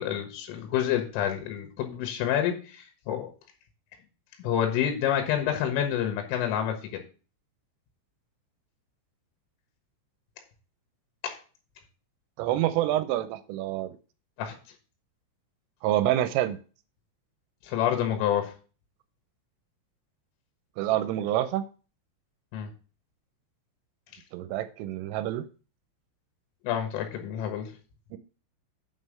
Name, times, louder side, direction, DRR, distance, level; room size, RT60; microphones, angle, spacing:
voice 1, 0.0-3.3 4.4-7.0 11.2-11.4 14.4-14.6 17.6-18.5 22.5-22.7 26.6-27.7, left 10 dB, 80° left, 5 dB, 3.9 m, -28 dB
voice 2, 12.4-14.0 15.8-16.6 20.8-21.6 24.3-25.4 28.1-28.2, right 13 dB, 90° right, 11 dB, 3.2 m, -27 dB
7.7 x 5.6 x 6.4 m, 0.36 s
omnidirectional pair, 5.8 m